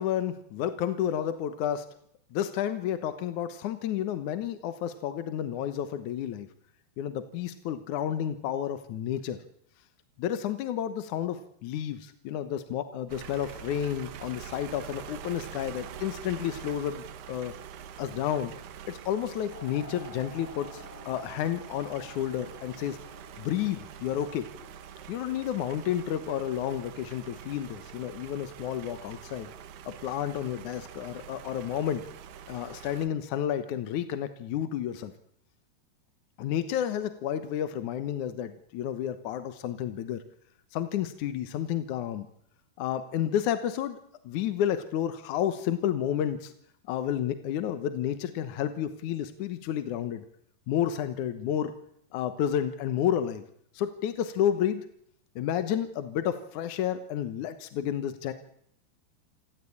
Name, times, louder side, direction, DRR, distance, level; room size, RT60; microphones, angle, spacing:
voice 1, 0.0-1.9 2.3-6.5 7.0-9.4 10.2-17.5 18.0-18.5 18.9-23.0 23.4-24.5 25.1-29.5 29.9-32.0 32.5-35.1 36.4-40.2 40.7-42.3 42.8-44.0 44.3-46.5 46.9-50.3 50.7-51.8 52.1-53.4 53.7-54.8 55.4-58.3, left 10 dB, 65° left, 10 dB, 2.0 m, -31 dB
sound 1, 13.1-33.1, right 9 dB, 70° right, 3.2 m, -45 dB
sound 2, 19.5-25.5, left 1 dB, 15° left, 2.4 m, -51 dB
27.5 x 13.5 x 8.6 m, 0.69 s
omnidirectional pair, 4.9 m